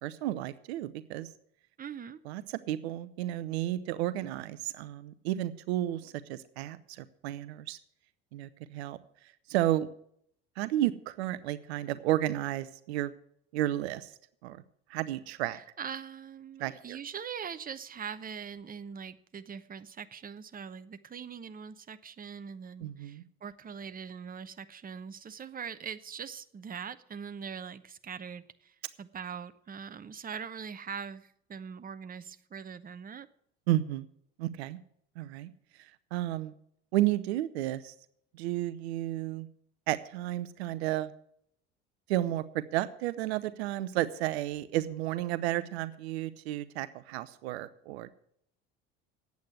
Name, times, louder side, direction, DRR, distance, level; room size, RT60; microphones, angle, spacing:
voice 1, 0.0-1.3 2.2-7.8 8.3-9.0 9.5-9.9 10.6-13.1 13.5-14.1 14.4-14.6 14.9-15.6 16.6-17.0 22.8-23.2 33.7-34.1 34.4-34.8 35.2-35.5 35.8-36.5 36.9-37.9 38.3-39.5 39.9-41.1 42.1-48.1, right 14 dB, 75° right, 14 dB, 0.7 m, -32 dB
voice 2, 1.8-2.2 15.5-33.3, right 7 dB, 25° right, 12 dB, 0.9 m, -42 dB
9.4 x 8.4 x 9.7 m, 0.68 s
hypercardioid pair, 70°, 32 cm